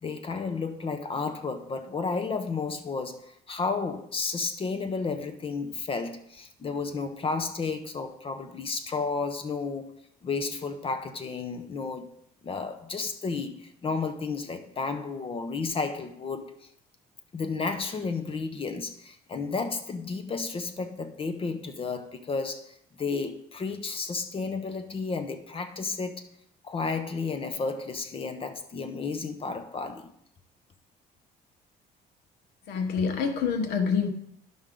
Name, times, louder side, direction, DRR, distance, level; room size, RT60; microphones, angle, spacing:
voice 1, 0.0-9.9 10.2-12.1 12.4-16.5 17.3-26.2 26.6-30.1, left 4 dB, 35° left, 1.0 m, -32 dB
voice 2, 32.7-34.1, left 6 dB, 80° left, 1.2 m, -26 dB
12.0 x 5.5 x 3.8 m
cardioid pair, 110°, 17 cm